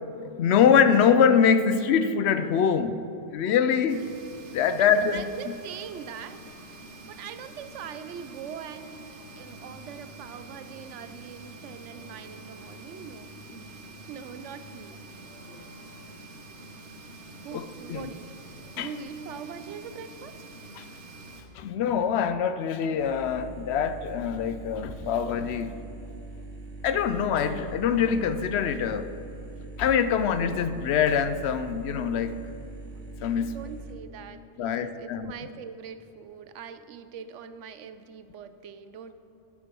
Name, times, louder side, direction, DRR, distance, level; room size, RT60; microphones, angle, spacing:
voice 1, 0.2-3.0 3.3-4.0 4.5-5.2 15.5-15.6 17.5-18.1 18.8-18.9 20.8-20.9 21.5-25.8 26.8-29.1 29.8-32.5 33.2-33.6 34.6-35.3, left 7 dB, 70° left, 12 dB, 0.8 m, -24 dB
sound 1, 3.9-21.4, right 2 dB, 70° right, 1.5 m, -46 dB
voice 2, 4.8-6.4 7.0-9.0 9.4-13.6 14.1-15.0 17.4-18.3 18.7-20.3 33.5-39.1, right 7 dB, 90° right, 11 dB, 1.0 m, -42 dB
sound 2, 23.0-33.9, right 2 dB, 45° right, 1.0 m, -42 dB
13.0 x 5.9 x 6.1 m, 2.7 s
omnidirectional pair, 1.2 m